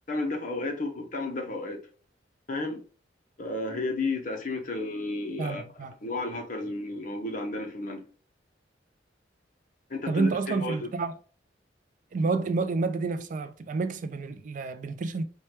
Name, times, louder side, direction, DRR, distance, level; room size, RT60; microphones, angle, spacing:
voice 1, 0.1-1.8 2.5-2.8 3.4-5.6 6.0-8.1 9.9-10.9, left 2 dB, 45° left, 0.7 m, -32 dB
voice 2, 5.4-5.9 10.1-11.1 12.1-15.2, right 4 dB, 45° right, 0.3 m, -29 dB
4.3 x 2.2 x 3.2 m
head